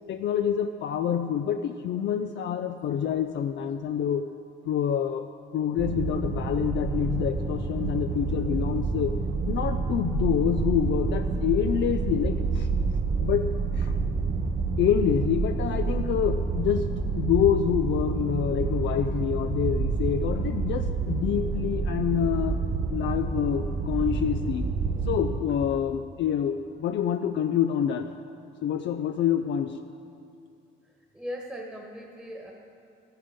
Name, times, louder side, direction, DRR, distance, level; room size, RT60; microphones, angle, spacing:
voice 1, 0.1-4.3 4.6-5.3 5.5-9.2 9.5-12.7 13.2-13.5 13.7-14.0 14.8-22.6 22.9-24.7 25.1-28.1 28.6-29.8, left 9 dB, 65° left, 7 dB, 0.5 m, -27 dB
sound 1, 5.8-25.4, right 4 dB, 40° right, 0.8 m, -28 dB
voice 2, 31.1-32.5, equal, 5° right, -1 dB, 1.4 m, -38 dB
13.5 x 9.0 x 5.2 m, 2.4 s
cardioid pair, 90°, 20 cm